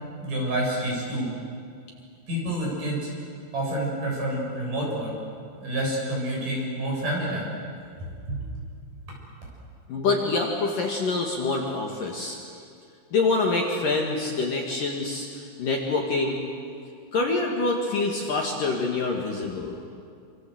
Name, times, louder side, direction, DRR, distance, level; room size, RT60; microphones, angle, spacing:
voice 1, 0.2-1.3 2.3-3.1 3.5-5.1 5.6-7.5 8.3-8.4, right 1 dB, 45° right, -2 dB, 8.2 m, -28 dB
voice 2, 9.9-12.4 13.1-16.4 17.1-19.8, left 3 dB, 55° left, 0 dB, 3.1 m, -26 dB
28.0 x 26.5 x 7.9 m, 2.3 s
omnidirectional pair, 5.4 m